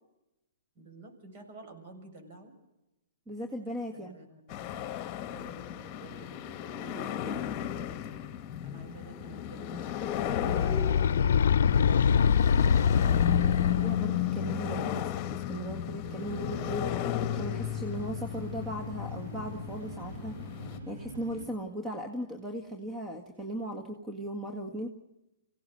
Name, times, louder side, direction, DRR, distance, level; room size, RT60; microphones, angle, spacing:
voice 1, 0.7-2.6 4.0-8.3 8.6-12.3, right 2 dB, 45° right, 5 dB, 6.7 m, -51 dB
voice 2, 3.3-4.2 13.4-16.9 17.3-20.4 20.9-24.9, right 1 dB, 15° right, 6 dB, 1.9 m, -38 dB
sound 1, 4.5-20.8, left 11 dB, 30° left, 1.5 m, -34 dB
sound 2, 10.2-14.1, left 7 dB, 70° left, 0.7 m, -24 dB
sound 3, 16.1-21.4, right 2 dB, 70° right, 6.8 m, -44 dB
25.0 x 17.5 x 7.8 m, 0.96 s
hypercardioid pair, 140°, 0 cm